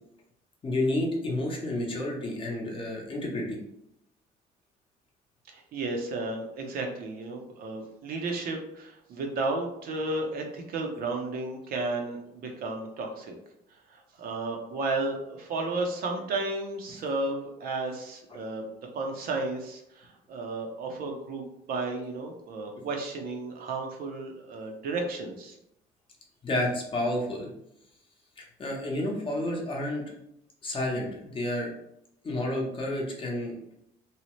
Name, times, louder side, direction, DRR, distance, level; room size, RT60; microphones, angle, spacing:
voice 1, 0.6-3.6 26.4-27.5 28.4-30.0 30.6-31.7 32.2-33.5, left 1 dB, 30° left, -1 dB, 0.7 m, -30 dB
voice 2, 5.5-13.3 14.2-25.6, right 2 dB, 60° right, 2 dB, 0.6 m, -33 dB
2.8 x 2.0 x 3.0 m, 0.79 s
cardioid pair, 110°, 17 cm